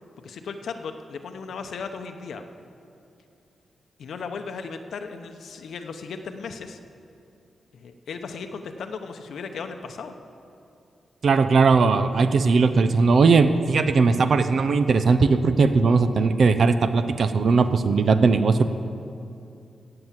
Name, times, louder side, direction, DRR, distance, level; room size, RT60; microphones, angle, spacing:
voice 1, 0.2-2.4 4.0-6.8 7.7-10.1, left 5 dB, 80° left, 6 dB, 0.8 m, -36 dB
voice 2, 11.2-18.7, right 4 dB, 60° right, 10 dB, 0.6 m, -19 dB
15.5 x 7.9 x 7.4 m, 2.6 s
wide cardioid pair, 120°, 0 cm